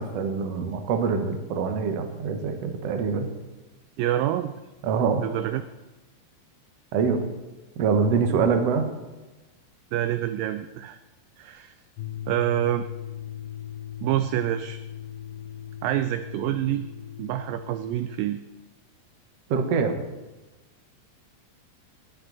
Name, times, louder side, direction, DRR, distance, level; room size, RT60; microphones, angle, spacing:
voice 1, 0.0-3.3 4.8-5.2 6.9-7.2 7.8-8.9 19.5-20.0, right 5 dB, 70° right, 6 dB, 1.5 m, -24 dB
voice 2, 4.0-4.5 5.2-5.6 8.3-8.4 9.9-11.0 11.4-11.7 12.3-12.8 14.0-14.8 15.8-16.9 17.2-18.4, right 13 dB, 85° right, 10 dB, 2.1 m, -27 dB
sound 1, 12.0-18.2, left 11 dB, 80° left, 2.4 m, -38 dB
19.5 x 9.8 x 4.0 m, 1.1 s
omnidirectional pair, 4.7 m